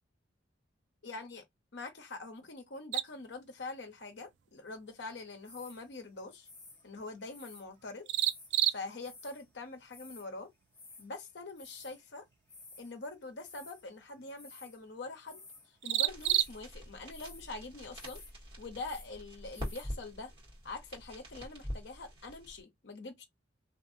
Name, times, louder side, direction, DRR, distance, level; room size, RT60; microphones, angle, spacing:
voice 1, 1.0-1.4 1.7-6.5 6.8-8.1 8.7-10.5 11.0-12.3 12.8-15.4 15.8-18.2 18.6-20.3 20.6-23.2, left 3 dB, 60° left, 0.7 m, -44 dB
sound 1, 2.9-20.7, right 14 dB, 65° right, 0.3 m, -40 dB
sound 2, 5.4-5.9 6.4-7.6 8.1-8.5 9.0-9.5 9.7-10.3 10.7-11.1 11.6-12.1 12.3-13.0 13.4-13.9 14.4-14.8 15.2-15.7 16.2-16.6 17.1-17.5 17.9-18.3 18.6-19.1 19.5-19.9, left 3 dB, 15° left, 1.0 m, -53 dB
sound 3, 16.1-22.6, equal, 25° right, 1.5 m, -45 dB
2.6 x 2.5 x 2.6 m
head